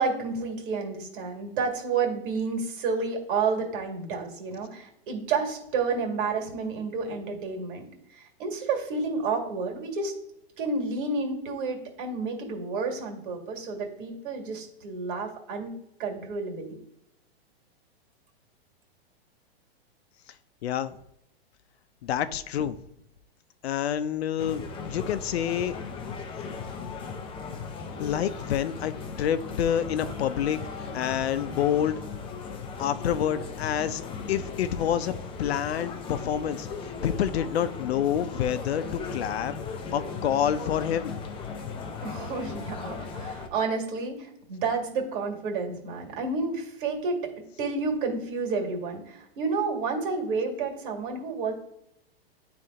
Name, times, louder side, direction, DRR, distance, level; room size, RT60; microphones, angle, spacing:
voice 1, 0.0-10.1 10.6-15.7 16.0-16.8 42.0-47.2 47.6-51.5, right 4 dB, 55° right, 1 dB, 2.1 m, -30 dB
voice 2, 20.6-21.0 22.0-22.8 23.6-25.8 28.0-28.9 29.2-30.6 30.9-32.0 32.8-34.0 34.3-35.1 35.4-41.2, left 9 dB, 80° left, 12 dB, 0.6 m, -28 dB
sound 1, 24.4-43.5, left 5 dB, 15° left, 0.5 m, -37 dB
9.2 x 3.4 x 3.7 m, 0.80 s
hypercardioid pair, 135°, 31 cm